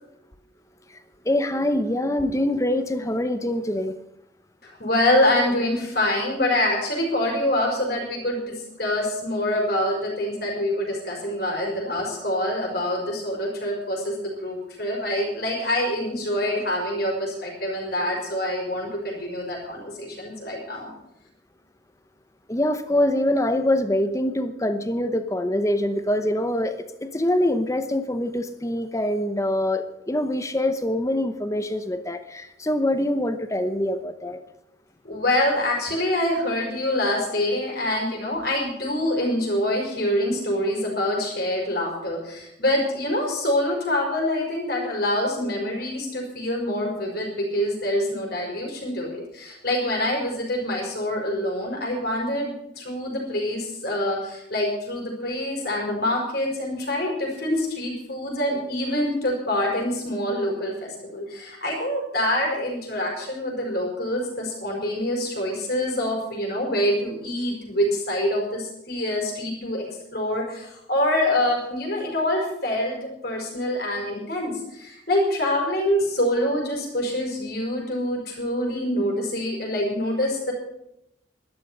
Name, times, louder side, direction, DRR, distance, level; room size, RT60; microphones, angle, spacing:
voice 1, 1.2-3.9 22.5-34.4, left 1 dB, 15° left, 0.8 m, -24 dB
voice 2, 4.6-20.9 35.0-69.8 70.1-80.5, left 1 dB, 55° left, 4.9 m, -25 dB
12.0 x 12.0 x 6.8 m
head